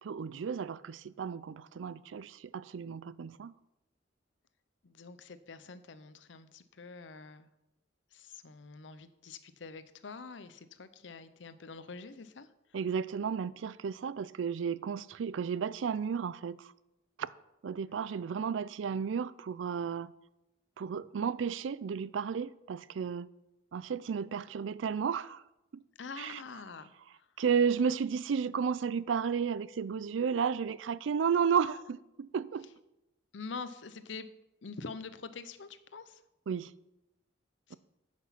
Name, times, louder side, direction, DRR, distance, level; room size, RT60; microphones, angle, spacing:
voice 1, 0.0-3.5 12.7-16.7 17.2-17.3 17.6-20.1 20.8-23.3 23.7-25.4 26.2-26.4 27.4-32.7 36.5-36.7 37.7-37.8, right 6 dB, 85° right, 0.4 m, -33 dB
voice 2, 4.8-7.5 8.1-12.5 26.0-26.9 33.3-34.3 34.6-36.2 37.7-37.8, left 4 dB, 75° left, 0.7 m, -45 dB
10.0 x 6.1 x 5.7 m
head